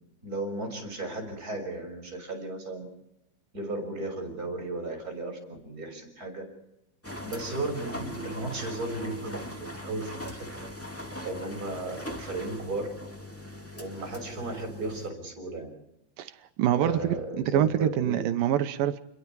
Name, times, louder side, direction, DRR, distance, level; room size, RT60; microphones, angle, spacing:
voice 1, 0.2-2.8 3.5-6.5 7.2-10.5 11.2-12.9 13.7-15.7 16.8-18.2, right 2 dB, 20° right, 2 dB, 6.6 m, -35 dB
sound 1, 7.0-15.1, left 1 dB, 5° left, 1.4 m, -40 dB
voice 2, 16.6-19.0, right 11 dB, 70° right, 10 dB, 2.3 m, -25 dB
28.5 x 22.0 x 4.8 m, 0.84 s
omnidirectional pair, 4.7 m